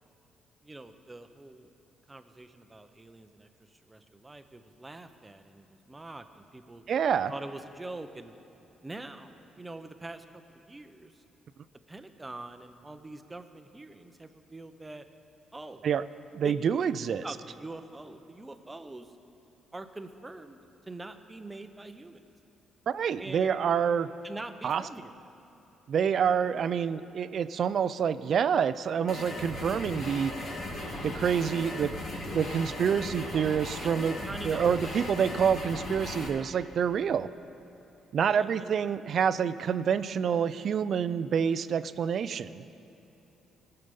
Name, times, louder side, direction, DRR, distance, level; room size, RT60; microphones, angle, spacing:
voice 1, 0.6-1.7 2.1-6.8 7.3-8.3 8.8-11.2 11.9-15.1 15.5-15.9 16.4-16.5 17.2-19.1 19.7-20.6 20.9-22.2 23.2-23.6 24.2-25.1 33.8-35.0 38.3-38.8, right 2 dB, 15° right, 8 dB, 0.8 m, -44 dB
voice 2, 6.9-7.3 15.8-16.0 16.3-17.3 22.9-24.1 24.6-24.8 25.9-30.3 31.0-31.9 32.3-34.1 34.4-37.3 38.1-42.6, right 7 dB, 60° right, 14 dB, 0.4 m, -27 dB
sound 1, 29.1-36.3, left 1 dB, 60° left, 2.1 m, -37 dB
19.0 x 6.8 x 5.4 m, 3.0 s
cardioid pair, 90°, 0 cm